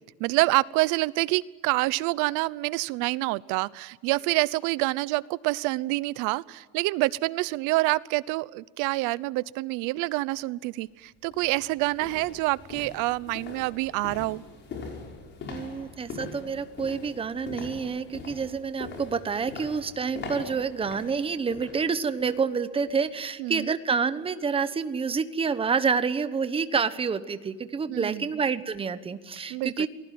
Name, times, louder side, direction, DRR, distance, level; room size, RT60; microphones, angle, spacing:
voice 1, 0.2-14.4 23.4-23.8 27.9-28.3 29.5-29.9, right 21 dB, 85° right, 20 dB, 0.9 m, -27 dB
sound 1, 10.5-10.7 11.2-22.5 22.9-23.1 23.5-23.6, left 4 dB, 35° left, 5.7 m, -42 dB
voice 2, 15.5-29.9, right 5 dB, 20° right, 12 dB, 1.1 m, -28 dB
27.5 x 19.5 x 9.4 m, 1.4 s
cardioid pair, 160°, 30 cm